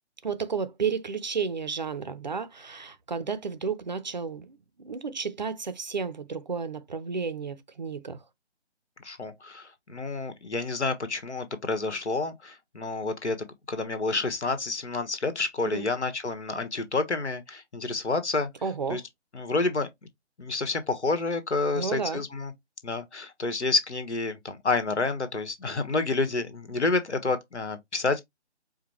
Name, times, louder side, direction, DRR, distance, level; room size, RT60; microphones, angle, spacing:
voice 1, 0.2-8.2 15.6-15.9 18.6-19.0 21.7-22.2, right 5 dB, 40° right, 0.5 m, -32 dB
voice 2, 9.0-13.4 13.7-18.5 18.9-19.0 19.3-19.9 20.4-22.5 22.8-28.2, left 3 dB, 75° left, 1.3 m, -29 dB
4.9 x 2.2 x 3.0 m
figure-of-eight pair, 150°, 34 cm